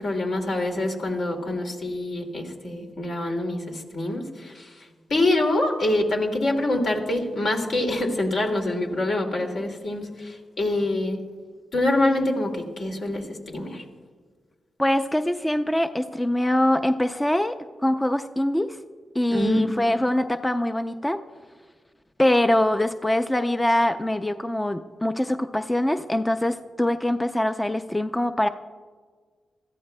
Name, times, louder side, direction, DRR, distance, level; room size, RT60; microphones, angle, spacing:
voice 1, 0.0-4.7 5.1-11.2 11.7-13.8 19.3-19.6, left 1 dB, 65° left, 1 dB, 2.3 m, -25 dB
voice 2, 14.8-17.6 17.8-18.8 19.1-21.2 22.2-28.5, left 1 dB, 10° left, 9 dB, 0.4 m, -23 dB
20.5 x 14.0 x 2.2 m, 1.5 s
cardioid pair, 75°, 0 cm